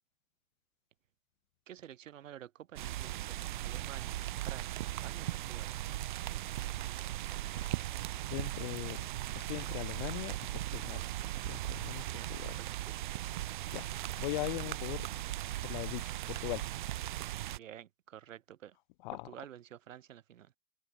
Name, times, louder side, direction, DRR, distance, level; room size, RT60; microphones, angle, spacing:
voice 1, 1.7-5.7 12.1-13.1 17.5-18.8 19.1-20.5, right 11 dB, 65° right, 7.4 m, -51 dB
sound 1, 2.8-17.6, right 14 dB, 35° right, 0.6 m, -38 dB
voice 2, 7.5-7.9 8.3-9.1 9.3-11.0 11.4-12.0 12.3-12.5 13.7-13.9 14.2-15.1 15.6-16.7 19.0-19.3, left 21 dB, 35° left, 1.6 m, -40 dB
open air
hypercardioid pair, 155°, 42 cm